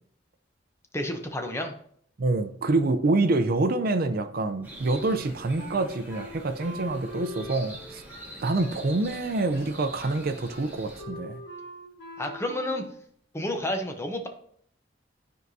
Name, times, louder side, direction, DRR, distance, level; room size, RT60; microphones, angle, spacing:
voice 1, 0.9-1.7 12.2-12.8 13.3-14.3, left 1 dB, 15° left, 4 dB, 0.7 m, -30 dB
voice 2, 2.2-8.0 8.4-11.4, right 2 dB, 55° right, 9 dB, 0.5 m, -26 dB
sound 1, 4.6-11.0, right 1 dB, 10° right, 1.7 m, -45 dB
Wind instrument woodwind instrument, 5.6-13.0, equal, 85° left, 2.7 m, -43 dB
12.5 x 4.6 x 2.7 m, 0.64 s
head